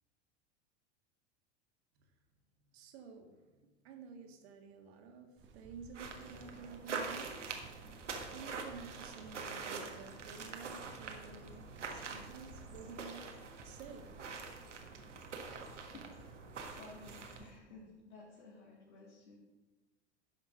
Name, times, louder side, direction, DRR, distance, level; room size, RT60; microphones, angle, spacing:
voice 1, 2.7-13.3 13.6-14.1, right 5 dB, 60° right, 4 dB, 1.9 m, -52 dB
sound 1, 5.4-17.4, right 5 dB, 35° right, 1.3 m, -58 dB
sound 2, 5.9-17.5, right 4 dB, 80° right, 1.5 m, -45 dB
voice 2, 16.7-19.4, left 3 dB, 65° left, -5 dB, 2.7 m, -54 dB
10.5 x 5.8 x 5.9 m, 1.2 s
figure-of-eight pair, 85°, 35 cm